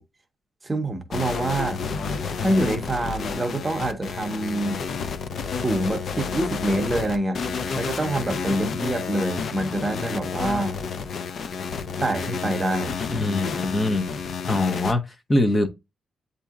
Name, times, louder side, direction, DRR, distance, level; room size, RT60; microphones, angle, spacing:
voice 1, 0.6-1.8 2.4-4.8 5.5-7.4 7.8-10.8 12.0-13.3, right 1 dB, 20° right, 0.7 m, -26 dB
sound 1, 1.1-14.9, left 5 dB, 60° left, 0.5 m, -30 dB
voice 2, 13.1-14.1 14.5-15.0 15.3-15.7, left 2 dB, 25° left, 0.7 m, -22 dB
8.2 x 2.7 x 2.3 m
wide cardioid pair, 130°, 0 cm